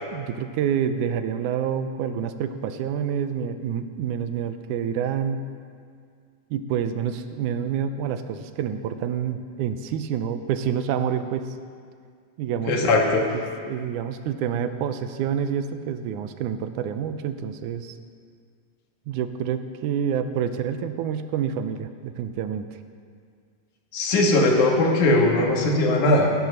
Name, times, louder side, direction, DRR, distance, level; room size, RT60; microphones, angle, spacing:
voice 1, 0.1-5.4 6.5-11.5 12.4-12.9 13.3-18.0 19.1-22.7, right 8 dB, 75° right, 9 dB, 2.1 m, -28 dB
voice 2, 12.7-13.2 23.9-26.3, left 2 dB, 65° left, 1 dB, 3.1 m, -19 dB
17.5 x 10.5 x 6.5 m, 2.1 s
omnidirectional pair, 3.9 m